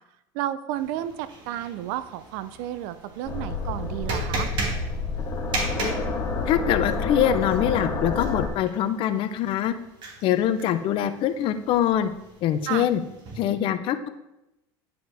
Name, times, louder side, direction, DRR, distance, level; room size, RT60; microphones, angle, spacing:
voice 1, 0.3-4.5 12.7-12.9, right 12 dB, 70° right, 14 dB, 0.5 m, -32 dB
sound 1, 0.7-13.5, right 2 dB, 45° right, 2.1 m, -37 dB
sound 2, 3.3-8.5, left 3 dB, 30° left, 1.5 m, -29 dB
voice 2, 6.5-9.7 10.2-12.1 12.4-13.0 13.4-14.1, left 10 dB, 50° left, 11 dB, 0.6 m, -24 dB
10.5 x 5.0 x 3.5 m, 0.90 s
supercardioid pair, 120°, 11 cm